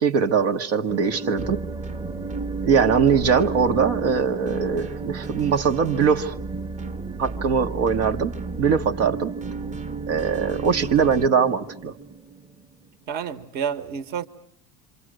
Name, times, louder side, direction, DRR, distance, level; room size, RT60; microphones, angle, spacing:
voice 1, 0.0-1.6 2.6-6.3 7.2-9.3 10.1-11.9, right 6 dB, 80° right, 1.7 m, -21 dB
sound 1, 0.9-12.9, right 4 dB, 20° right, 1.1 m, -34 dB
sound 2, 1.4-11.3, right 3 dB, 40° right, 1.4 m, -36 dB
voice 2, 13.1-14.3, right 7 dB, 55° right, 1.5 m, -30 dB
27.0 x 26.5 x 7.9 m
supercardioid pair, 125°, 20 cm